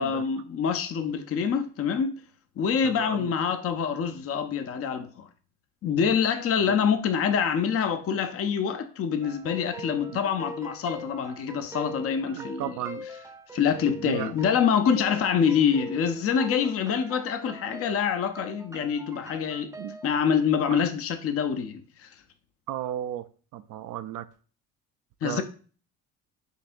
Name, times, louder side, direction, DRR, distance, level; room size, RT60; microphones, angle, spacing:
voice 1, 0.0-2.2 2.6-5.3 5.8-12.8 13.5-19.7 20.0-22.1 25.2-25.4, left 7 dB, 40° left, 0.5 m, -26 dB
voice 2, 2.8-3.3 6.7-6.8 10.1-10.2 12.3-13.1 14.0-14.3 19.8-20.0 20.7-20.8 22.7-23.2 23.5-24.3 25.2-25.4, right 12 dB, 60° right, 0.4 m, -34 dB
sound 1, 9.2-20.2, equal, 10° right, 0.5 m, -42 dB
6.4 x 2.7 x 2.5 m
supercardioid pair, 80°, 36 cm